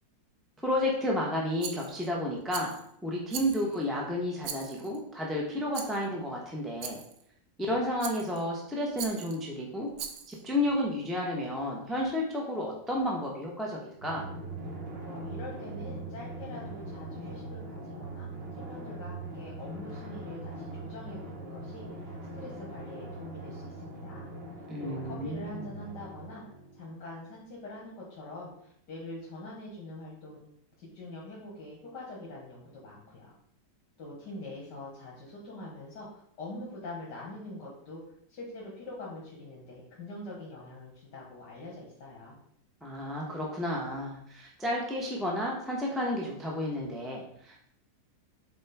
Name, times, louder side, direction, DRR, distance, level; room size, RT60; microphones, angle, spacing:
voice 1, 0.6-2.7 3.0-7.0 7.7-9.9 10.3-14.3 24.7-25.7 42.8-47.7, left 1 dB, ahead, -2 dB, 0.6 m, -31 dB
Rattle, 1.6-2.1 2.5-2.9 3.3-3.8 4.4-5.0 5.7-6.1 6.8-7.2 8.0-8.4 9.0-9.4 9.9-10.4, right 8 dB, 80° right, 1.3 m, -40 dB
Drum, 14.0-27.1, right 2 dB, 45° right, 0.9 m, -41 dB
voice 2, 15.0-18.3 18.6-26.4 26.7-30.5 30.8-33.3 34.0-38.0 38.3-42.4, left 2 dB, 75° left, -4 dB, 2.0 m, -44 dB
7.3 x 4.3 x 3.5 m, 0.69 s
omnidirectional pair, 1.9 m